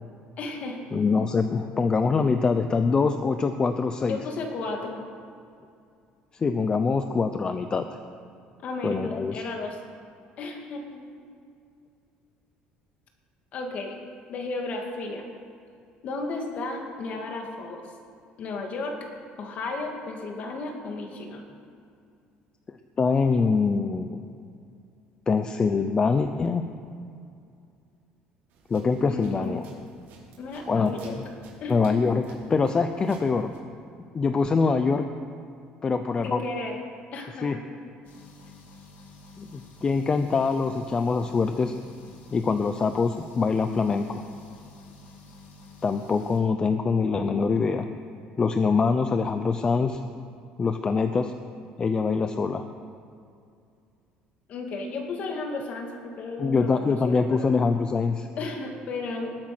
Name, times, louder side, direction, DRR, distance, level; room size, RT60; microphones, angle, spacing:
voice 1, 0.4-0.8 4.1-5.0 8.6-9.8 10.4-11.0 13.5-14.0 14.3-15.3 16.0-17.8 18.4-19.0 19.4-21.4 29.1-29.6 30.4-31.2 31.6-32.0 36.2-36.8 37.1-37.6 54.5-57.5 58.4-59.4, left 3 dB, 50° left, 2 dB, 2.5 m, -34 dB
voice 2, 0.9-4.2 6.3-7.9 8.8-9.4 22.7-24.2 25.3-26.6 28.7-29.6 30.7-30.9 31.7-32.2 32.5-33.5 34.1-35.1 35.8-36.4 37.4-37.6 39.4-41.7 42.3-44.2 45.8-47.9 48.4-50.0 50.6-51.3 51.8-52.7 56.4-58.3, left 4 dB, 25° left, 8 dB, 0.6 m, -24 dB
sound 1, 28.5-33.6, right 3 dB, 70° right, 4.6 m, -53 dB
sound 2, 38.0-46.4, left 3 dB, 65° left, 2.8 m, -49 dB
20.5 x 8.7 x 6.1 m, 2.4 s
cardioid pair, 130°, 3 cm